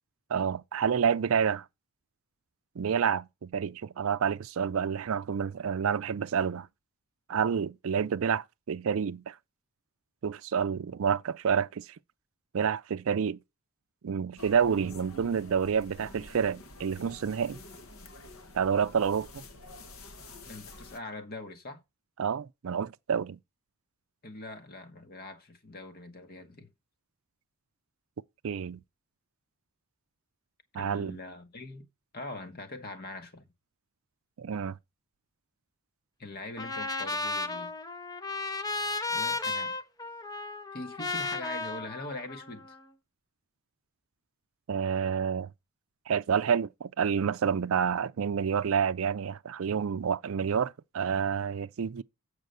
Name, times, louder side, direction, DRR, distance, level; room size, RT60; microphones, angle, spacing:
voice 1, 0.3-1.7 2.8-6.7 7.3-9.4 10.2-12.0 12.5-13.4 14.0-17.6 18.5-19.4 22.2-23.4 28.4-28.8 30.7-31.2 34.4-34.8 44.7-45.5 46.1-52.0, right 7 dB, 60° right, 0.4 m, -29 dB
sound 1, 14.4-21.0, left 1 dB, 65° left, 1.1 m, -48 dB
voice 2, 20.5-21.8 24.2-26.7 30.7-31.8 32.1-33.5 36.2-37.7 39.1-39.8 40.7-42.7, left 2 dB, 45° left, 1.2 m, -42 dB
Trumpet, 36.6-42.8, left 3 dB, 15° left, 0.7 m, -34 dB
7.7 x 4.9 x 6.7 m
head